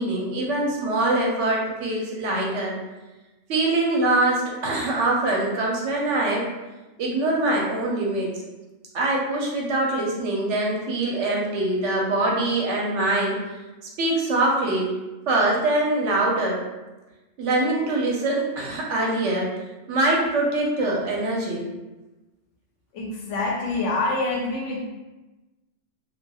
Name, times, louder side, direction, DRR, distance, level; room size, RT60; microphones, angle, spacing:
voice 1, 0.0-2.8 3.5-6.5 7.0-8.3 8.9-13.4 14.0-15.0 15.3-16.6 17.4-19.6 19.9-21.6, right 2 dB, 70° right, -2 dB, 0.9 m, -23 dB
voice 2, 22.9-24.8, left 2 dB, 75° left, -1 dB, 0.9 m, -26 dB
2.7 x 2.3 x 2.2 m, 1.1 s
omnidirectional pair, 1.3 m